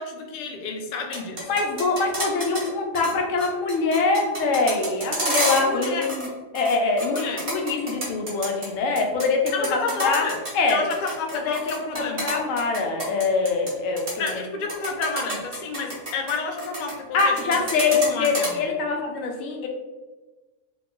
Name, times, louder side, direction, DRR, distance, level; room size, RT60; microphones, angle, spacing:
voice 1, 0.0-1.5 5.6-6.1 7.0-7.4 9.5-10.4 10.7-12.3 14.2-18.6, left 4 dB, 65° left, 3 dB, 0.4 m, -30 dB
sound 1, 1.0-2.7 2.9-3.1 3.4-6.3 6.5-8.7 9.0-13.7 14.0-14.3 14.7-16.9 17.2-18.5, right 1 dB, 40° right, 1.0 m, -29 dB
voice 2, 1.5-6.3 6.5-7.2 7.4-10.2 10.5-10.9 11.3-14.4 17.1-19.7, left 4 dB, 85° left, 2 dB, 1.0 m, -24 dB
2.9 x 2.3 x 3.7 m, 1.2 s
omnidirectional pair, 1.3 m